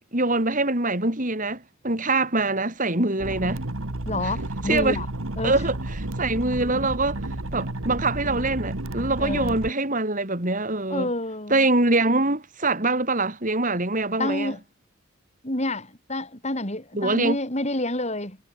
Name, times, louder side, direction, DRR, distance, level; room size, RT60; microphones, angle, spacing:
voice 1, 0.1-3.6 4.2-4.3 4.6-5.0 5.4-7.2 7.5-11.1 11.5-14.6 16.9-17.4, right 2 dB, 35° right, 4.0 m, -24 dB
sound 1, 3.2-9.7, right 1 dB, 70° right, 2.0 m, -31 dB
voice 2, 4.0-5.1 5.4-5.5 9.2-9.6 10.9-11.6 14.2-14.6 15.4-18.4, left 1 dB, 30° left, 5.0 m, -28 dB
head